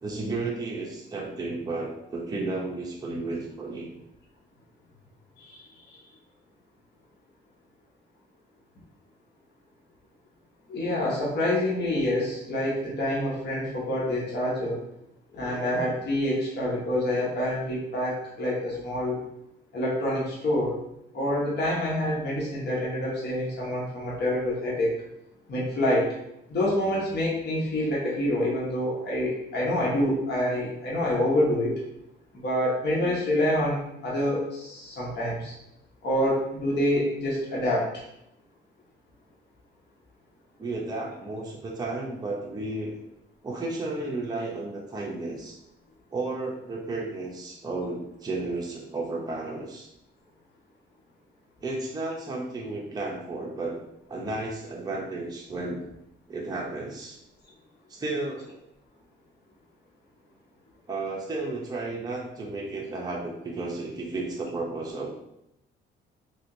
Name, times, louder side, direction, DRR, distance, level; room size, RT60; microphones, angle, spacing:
voice 1, 0.0-3.9 40.6-43.0 43.4-45.6 46.1-49.9 51.6-53.8 54.1-55.8 56.3-57.2 57.9-58.6 60.9-65.1, right 2 dB, 20° right, -2 dB, 0.6 m, -33 dB
voice 2, 10.7-14.8 15.3-19.2 19.7-20.8 21.1-24.9 25.5-26.1 26.5-31.8 32.3-35.5 36.0-38.0, left 1 dB, 55° left, -5 dB, 1.1 m, -27 dB
3.3 x 2.8 x 2.6 m, 0.82 s
cardioid pair, 90°, 20 cm